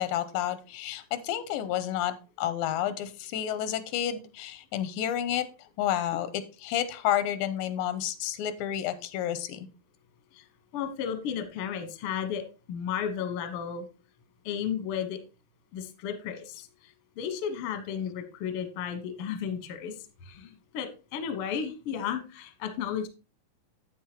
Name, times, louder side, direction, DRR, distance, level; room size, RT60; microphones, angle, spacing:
voice 1, 0.0-5.5 5.8-9.7, left 11 dB, 85° left, 12 dB, 2.4 m, -30 dB
voice 2, 10.7-12.4 12.7-13.8 14.4-15.2 15.7-19.9 20.2-23.1, left 8 dB, 65° left, 8 dB, 1.4 m, -33 dB
9.4 x 8.3 x 2.9 m, 0.32 s
omnidirectional pair, 4.1 m